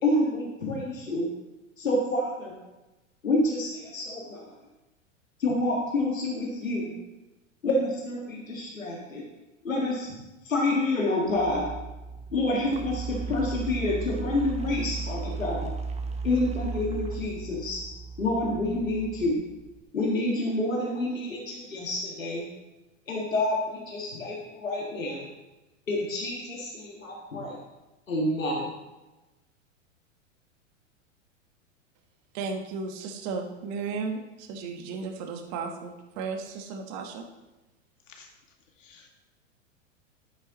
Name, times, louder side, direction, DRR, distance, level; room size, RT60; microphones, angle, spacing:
voice 1, 0.0-1.3 1.8-2.5 3.2-4.5 5.4-6.9 7.6-9.2 9.6-10.1 10.4-11.7 12.3-15.7 16.2-17.8 18.2-19.4 19.9-22.4 23.1-25.3 25.9-27.6 28.1-28.7, left 2 dB, 85° left, -2 dB, 1.9 m, -28 dB
sound 1, 11.2-19.8, right 4 dB, 15° right, 1.1 m, -36 dB
voice 2, 32.3-37.3, right 4 dB, 45° right, 3 dB, 1.4 m, -34 dB
voice 3, 38.8-39.1, left 5 dB, 70° left, 2 dB, 2.1 m, -52 dB
10.5 x 9.6 x 3.0 m, 1.0 s
hypercardioid pair, 100°, 39 cm